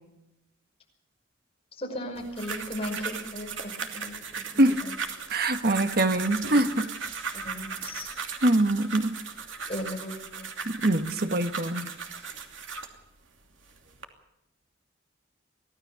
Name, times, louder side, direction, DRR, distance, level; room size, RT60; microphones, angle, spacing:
voice 1, 1.8-4.2 4.5-4.9 7.4-8.1 9.7-10.5, left 1 dB, 30° left, 1 dB, 5.7 m, -36 dB
sound 1, 2.1-13.0 13.6-14.0, right 5 dB, 80° right, 2.8 m, -37 dB
voice 2, 5.3-6.9 8.4-9.1 10.7-11.9, right 1 dB, 50° right, 8 dB, 1.4 m, -24 dB
24.5 x 16.5 x 7.0 m, 0.87 s
head